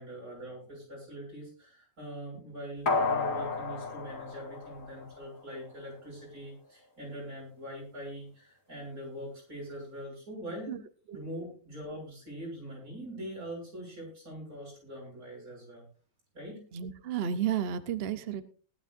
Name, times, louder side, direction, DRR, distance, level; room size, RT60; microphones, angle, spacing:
voice 1, 0.0-10.8 11.1-15.8 16.3-16.6, equal, 80° right, -3 dB, 7.9 m, -43 dB
sound 1, 2.9-5.4 5.8-5.9, left 3 dB, 60° left, 2.4 m, -32 dB
voice 2, 16.7-18.4, right 9 dB, 50° right, 11 dB, 0.9 m, -32 dB
19.0 x 11.5 x 2.6 m, 0.39 s
omnidirectional pair, 1.5 m